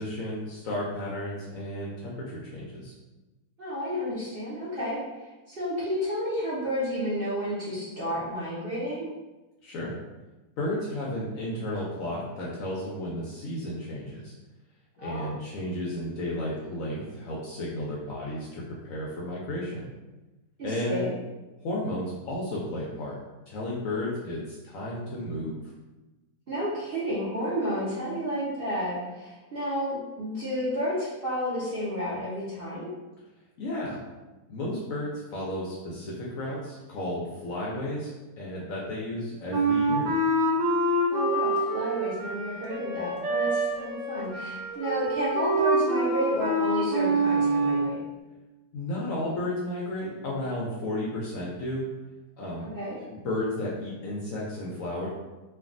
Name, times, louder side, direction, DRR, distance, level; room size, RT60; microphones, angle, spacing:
voice 1, 0.0-2.9 9.6-10.0 10.6-14.3 15.0-19.9 20.6-21.1 21.6-23.2 23.5-25.6 33.6-34.0 34.5-38.1 38.4-40.1 48.7-51.9 52.4-52.7 53.0-55.1, left 1 dB, 75° left, -5 dB, 0.7 m, -33 dB
voice 2, 3.6-5.0 5.5-9.1 15.0-15.3 20.6-21.1 26.5-32.9 41.1-48.0 52.6-53.0, equal, 70° right, -9 dB, 0.5 m, -31 dB
Wind instrument woodwind instrument, 39.5-47.9, right 1 dB, 90° right, 1.4 m, -26 dB
3.3 x 2.2 x 2.4 m, 1.1 s
omnidirectional pair, 1.9 m